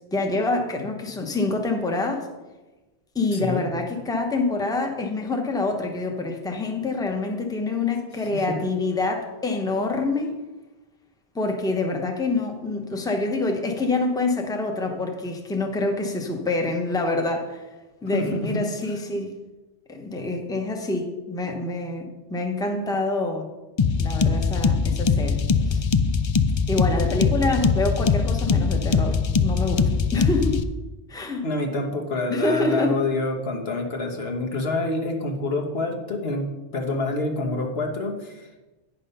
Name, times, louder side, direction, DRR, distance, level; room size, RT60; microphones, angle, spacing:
voice 1, 0.1-2.3 3.1-10.4 11.3-17.6 18.0-19.3 19.9-23.5 24.0-25.4 25.7-25.8 26.7-30.6 31.1-31.4 32.3-33.0, left 2 dB, 5° left, 3 dB, 0.9 m, -26 dB
voice 2, 3.3-3.7 8.3-8.6 18.1-18.6 31.4-38.5, left 2 dB, 75° left, 2 dB, 1.5 m, -27 dB
sound 1, 23.8-30.6, left 5 dB, 50° left, 0.3 m, -22 dB
9.7 x 5.8 x 5.5 m, 1.1 s
omnidirectional pair, 1.1 m